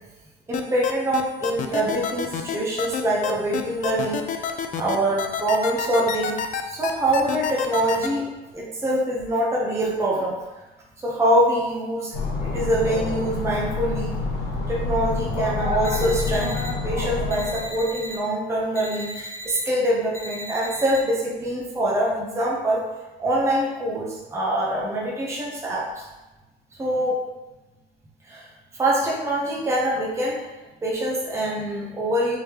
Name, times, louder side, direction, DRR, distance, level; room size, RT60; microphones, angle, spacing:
sound 1, 0.5-8.1, left 8 dB, 50° left, 0.4 m, -27 dB
voice 1, 0.5-4.5 4.8-6.4 6.6-8.3 8.5-10.4 11.0-14.2 14.7-16.5 16.8-22.8 23.2-26.1 26.8-27.2 28.2-28.5 28.7-30.4 30.8-32.4, right 1 dB, 15° right, -5 dB, 0.7 m, -24 dB
sound 2, 12.1-18.0, left 3 dB, 75° left, 0.8 m, -27 dB
sound 3, 15.8-16.7 17.3-18.2 18.7-19.6 20.1-21.0, equal, 15° left, 0.8 m, -36 dB
3.6 x 3.2 x 2.9 m, 1.1 s
cardioid pair, 110°, 17 cm